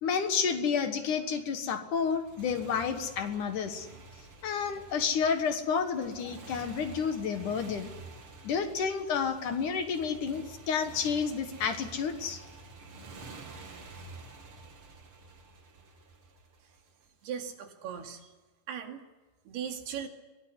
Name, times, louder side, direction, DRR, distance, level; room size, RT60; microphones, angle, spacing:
voice 1, 0.0-3.9 4.4-7.9 8.4-12.4, left 6 dB, 60° left, 8 dB, 2.7 m, -30 dB
Motorcycle, 1.9-17.1, right 3 dB, 40° right, 2.8 m, -49 dB
voice 2, 17.2-18.3 18.7-19.0 19.5-20.1, right 8 dB, 85° right, 4 dB, 4.4 m, -38 dB
23.5 x 19.0 x 9.8 m, 1.2 s
omnidirectional pair, 4.5 m